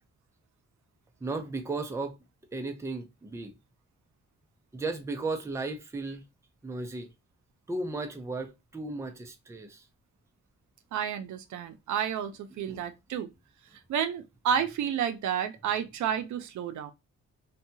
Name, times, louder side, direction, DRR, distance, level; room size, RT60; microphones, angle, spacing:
voice 1, 1.2-2.2 2.5-3.6 4.7-6.2 6.6-7.1 7.7-9.8 12.7-12.8, right 3 dB, 10° right, 0.4 m, -35 dB
voice 2, 10.9-13.3 13.9-16.9, right 8 dB, 80° right, 0.5 m, -31 dB
2.7 x 2.2 x 2.6 m
cardioid pair, 120°, 29 cm